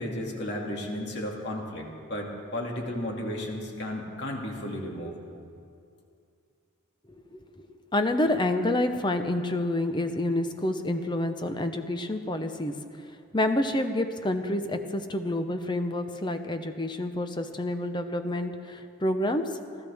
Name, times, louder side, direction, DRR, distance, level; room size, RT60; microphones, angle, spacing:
voice 1, 0.0-5.1, left 1 dB, 50° left, -1 dB, 2.4 m, -34 dB
voice 2, 7.9-12.8 13.3-19.4, left 1 dB, 20° left, 7 dB, 0.8 m, -28 dB
29.5 x 13.0 x 3.6 m, 2.4 s
head